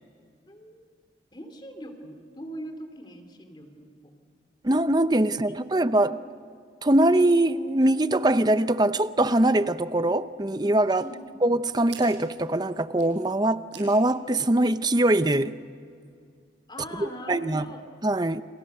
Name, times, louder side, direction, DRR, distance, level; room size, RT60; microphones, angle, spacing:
voice 1, 0.5-0.9 1.3-4.1 6.0-6.1 11.0-11.4 16.7-17.9, equal, 25° left, 3.0 m, -41 dB
voice 2, 4.6-6.2 6.8-11.1 11.4-15.6 17.0-17.7 18.0-18.4, right 1 dB, 25° right, 0.7 m, -22 dB
sound 1, 10.9-14.7, right 6 dB, 75° right, 7.2 m, -51 dB
30.0 x 29.5 x 6.8 m
head